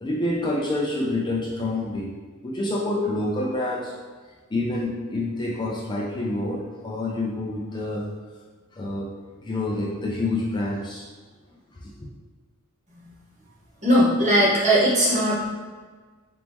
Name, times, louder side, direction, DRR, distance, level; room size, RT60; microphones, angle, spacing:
voice 1, 0.0-2.1 2.4-3.9 4.5-8.0 8.7-9.1 9.4-11.1 12.0-12.1, left 2 dB, 20° left, -3 dB, 0.4 m, -27 dB
voice 2, 13.8-15.5, equal, 35° right, -7 dB, 1.3 m, -19 dB
4.0 x 3.6 x 3.0 m, 1.4 s
head